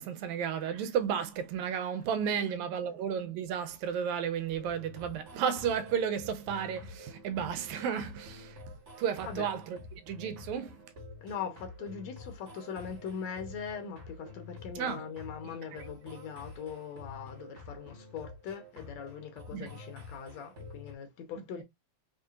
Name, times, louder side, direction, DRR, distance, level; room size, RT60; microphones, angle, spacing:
voice 1, 0.0-8.6 9.0-10.8 14.8-15.0 19.5-19.7, right 8 dB, 90° right, 2.0 m, -33 dB
sound 1, 4.5-20.9, left 2 dB, 50° right, 0.8 m, -48 dB
voice 2, 11.2-21.6, left 7 dB, 70° left, 2.1 m, -41 dB
5.4 x 3.2 x 2.5 m
omnidirectional pair, 3.3 m